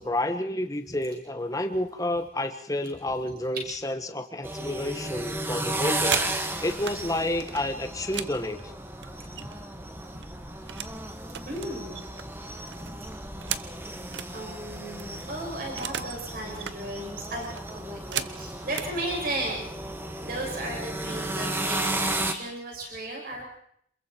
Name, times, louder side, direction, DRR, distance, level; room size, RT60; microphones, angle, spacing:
voice 1, 0.0-6.2 6.6-8.7, left 1 dB, 20° left, 8 dB, 1.3 m, -30 dB
sound 1, 4.4-22.3, right 1 dB, 10° right, 1.4 m, -34 dB
sound 2, 6.1-7.0 7.4-9.7 10.0-11.0 11.3-14.3 14.7-14.8 15.0-16.2 16.5-16.8 17.3-18.9 19.8-19.9 20.3-20.6 20.9-21.4, right 9 dB, 75° right, 1.0 m, -36 dB
voice 2, 11.4-12.1 14.3-19.6 20.2-23.4, right 1 dB, 50° right, 0 dB, 6.6 m, -35 dB
27.5 x 21.5 x 4.5 m, 0.68 s
head